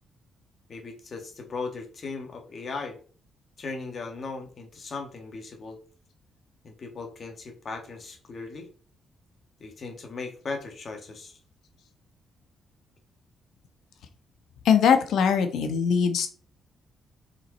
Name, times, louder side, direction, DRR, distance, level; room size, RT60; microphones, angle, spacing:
voice 1, 0.7-3.0 3.6-5.8 6.6-8.7 9.6-11.4, left 4 dB, 40° left, 3 dB, 1.8 m, -37 dB
voice 2, 14.6-16.3, left 7 dB, 80° left, 7 dB, 1.2 m, -21 dB
5.5 x 5.0 x 4.2 m, 0.40 s
cardioid pair, 120°, 0 cm